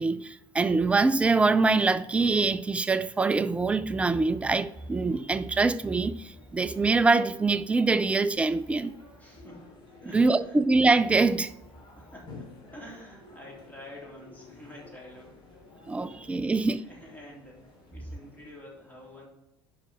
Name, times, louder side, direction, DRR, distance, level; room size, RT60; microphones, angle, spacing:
voice 1, 0.0-9.0 10.1-11.5 15.9-16.8, right 3 dB, 10° right, 0.4 m, -24 dB
sound 1, 3.9-18.5, left 3 dB, 35° left, 3.1 m, -53 dB
voice 2, 9.2-9.7 10.0-10.6 12.0-12.3 12.7-15.4 16.1-19.3, left 1 dB, 10° left, 3.2 m, -48 dB
10.5 x 4.8 x 4.3 m
figure-of-eight pair, 65°, 13 cm